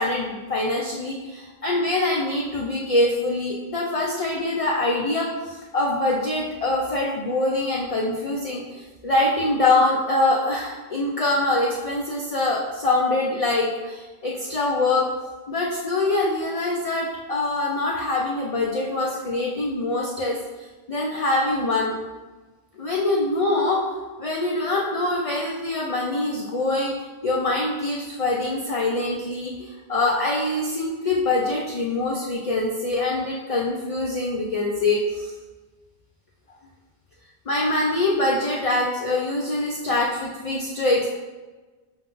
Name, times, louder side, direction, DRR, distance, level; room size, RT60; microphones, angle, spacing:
voice 1, 0.0-15.1 15.5-22.0 22.7-23.9 24.2-26.9 27.2-35.3 37.5-41.1, left 2 dB, 50° left, -3 dB, 0.5 m, -24 dB
5.4 x 2.2 x 3.8 m, 1.3 s
omnidirectional pair, 1.0 m